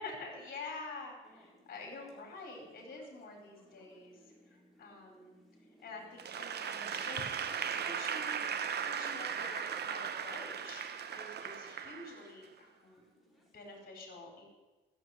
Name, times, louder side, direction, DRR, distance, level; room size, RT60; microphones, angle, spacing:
voice 1, 0.0-4.3 4.8-5.3 5.8-13.2 13.5-14.4, left 3 dB, 50° left, 0 dB, 4.7 m, -48 dB
sound 1, 1.2-13.9, equal, ahead, 4.0 m, -65 dB
Applause / Crowd, 6.2-12.4, right 7 dB, 55° right, 1.0 m, -37 dB
14.0 x 7.0 x 9.4 m, 1.2 s
cardioid pair, 90°, 20 cm